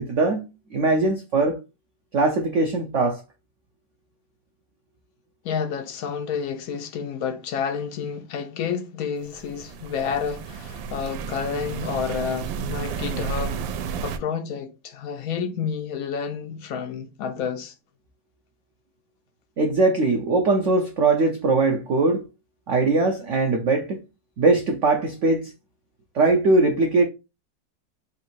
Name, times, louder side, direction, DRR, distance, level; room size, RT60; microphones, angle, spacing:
voice 1, 0.0-1.6 2.1-3.2 19.6-22.2 22.7-24.0 24.4-25.5 26.1-27.0, right 3 dB, 70° right, 0.7 m, -21 dB
voice 2, 5.4-13.6 14.0-17.7, left 7 dB, 80° left, 0.7 m, -30 dB
sound 1, 9.3-14.2, right 6 dB, 90° right, 1.3 m, -32 dB
3.6 x 2.7 x 4.3 m
omnidirectional pair, 2.0 m